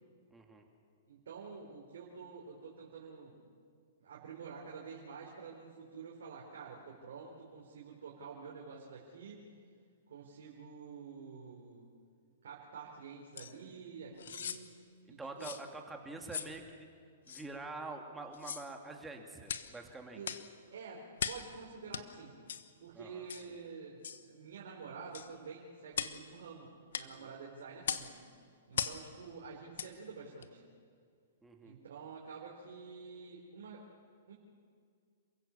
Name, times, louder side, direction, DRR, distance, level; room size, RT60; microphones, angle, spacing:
voice 1, 0.3-0.7 14.1-14.4 15.1-16.9 17.3-20.2 22.9-23.3 27.1-27.3 31.4-31.7, right 3 dB, 10° right, 3 dB, 2.5 m, -46 dB
voice 2, 1.1-3.4 4.0-9.4 10.1-11.9 12.4-14.7 15.1-15.5 20.1-20.4 20.7-22.4 22.8-28.3 28.7-30.6 31.6-33.8 34.3-34.4, right 5 dB, 75° right, -3 dB, 4.1 m, -49 dB
sound 1, 13.4-13.5 14.2-14.6 15.4-15.6 16.3-16.5 17.3-17.5 18.3-18.7 19.5-19.7 20.2-20.5 21.2-21.5 21.9-22.0 22.5-22.7 23.3-23.5 24.0-24.2 25.1-25.3 25.9-26.2 26.9-27.1 27.8-28.1 28.7-29.0 29.7-29.9 30.4-30.5, left 7 dB, 75° left, 1.1 m, -38 dB
28.0 x 16.0 x 7.1 m, 2.2 s
hypercardioid pair, 130°, 0 cm